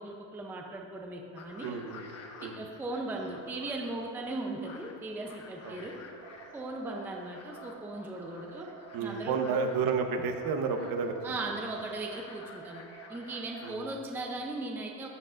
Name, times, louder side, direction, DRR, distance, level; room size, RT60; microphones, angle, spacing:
voice 1, 0.0-1.8 2.4-6.0 6.5-8.7 9.0-9.4 11.2-12.8 13.1-15.1, right 2 dB, 5° right, 0 dB, 0.5 m, -38 dB
sound 1, 1.4-14.0, left 4 dB, 35° left, 0.9 m, -52 dB
voice 2, 1.6-2.1 2.4-2.6 5.6-5.9 8.9-11.2 13.6-13.9, right 5 dB, 50° right, 5 dB, 1.0 m, -31 dB
sound 2, 6.1-14.3, right 8 dB, 85° right, 0.9 m, -51 dB
14.0 x 9.1 x 2.5 m, 2.6 s
cardioid pair, 140°, 45 cm